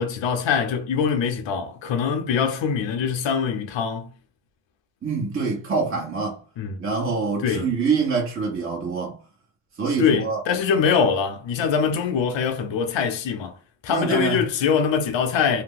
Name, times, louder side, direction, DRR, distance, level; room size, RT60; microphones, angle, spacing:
voice 1, 0.0-4.1 6.6-6.8 7.4-7.7 10.0-13.6 13.8-15.6, left 6 dB, 70° left, 0.8 m, -23 dB
voice 2, 5.0-6.4 6.8-9.2 9.8-10.4 13.9-14.4, right 4 dB, 25° right, 1.1 m, -25 dB
2.8 x 2.2 x 3.8 m
cardioid pair, 80°, 46 cm